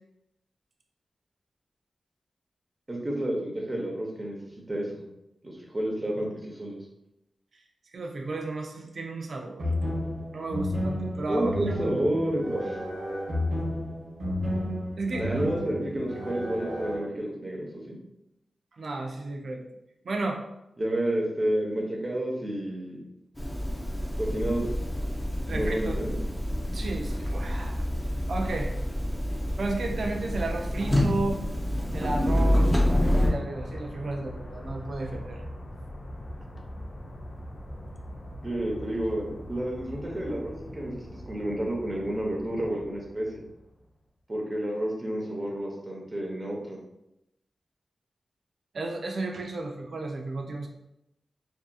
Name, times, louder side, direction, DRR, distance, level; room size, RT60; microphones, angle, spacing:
voice 1, 2.9-4.4 4.7-5.0 5.4-6.8 11.3-12.8 15.1-18.0 20.8-23.0 24.2-24.7 25.5-26.2 38.4-43.4 44.3-46.8, right 1 dB, 25° right, -1 dB, 0.7 m, -30 dB
voice 2, 7.9-9.7 10.3-11.5 15.0-15.3 18.8-19.6 20.0-20.4 25.5-26.0 26.6-27.8 28.3-28.7 29.6-31.4 31.9-35.4 48.7-50.7, right 2 dB, 70° right, 2 dB, 0.3 m, -33 dB
sound 1, 9.6-17.0, left 1 dB, 85° right, 0.9 m, -32 dB
sound 2, 23.3-33.3, equal, 10° left, 0.6 m, -27 dB
sound 3, 32.3-43.9, left 1 dB, 50° left, 0.4 m, -42 dB
2.6 x 2.4 x 2.3 m, 0.85 s
wide cardioid pair, 75°, 0 cm